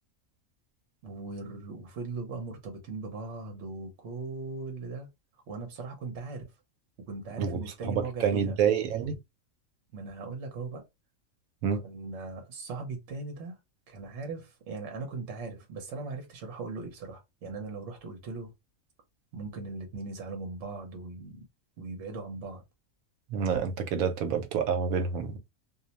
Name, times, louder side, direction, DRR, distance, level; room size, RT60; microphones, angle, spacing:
voice 1, 1.0-5.1 5.5-6.5 7.1-8.6 9.9-10.8 11.8-13.5 13.9-18.5 19.3-21.5 21.8-22.6, right 3 dB, 60° right, 1.0 m, -39 dB
voice 2, 7.4-9.2 11.6-11.8 23.3-25.4, right 7 dB, 85° right, 1.1 m, -28 dB
2.6 x 2.0 x 2.8 m
omnidirectional pair, 1.4 m